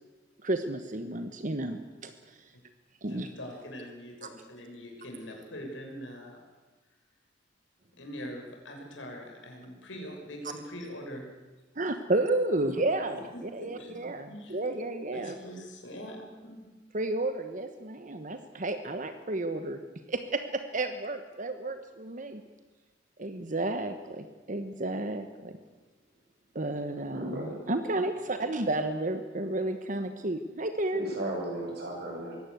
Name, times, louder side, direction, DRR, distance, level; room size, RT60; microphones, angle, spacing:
voice 1, 0.4-2.1 3.0-3.3 11.8-15.3 16.9-19.8 20.1-22.4 23.2-25.6 26.5-31.0, right 2 dB, 45° right, 8 dB, 1.2 m, -32 dB
voice 2, 3.1-6.4 8.0-11.3 13.1-13.9 14.3-14.6 15.1-16.6, equal, 85° left, 1 dB, 6.3 m, -43 dB
voice 3, 26.9-27.6 30.9-32.4, right 1 dB, 60° right, -1 dB, 7.9 m, -36 dB
22.5 x 17.5 x 8.2 m, 1.3 s
head